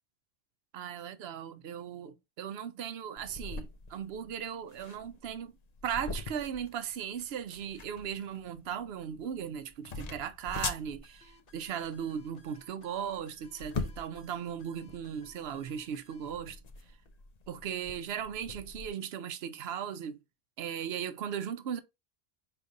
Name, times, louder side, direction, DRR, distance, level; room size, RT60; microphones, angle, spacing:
voice 1, 0.7-5.5 5.8-16.6 17.5-20.2 20.6-21.8, right 8 dB, 65° right, 0.8 m, -37 dB
sound 1, 3.2-18.9, left 4 dB, 45° left, 0.6 m, -43 dB
sound 2, 11.0-16.3, left 2 dB, 80° left, 1.4 m, -61 dB
5.0 x 3.3 x 2.6 m
omnidirectional pair, 1.2 m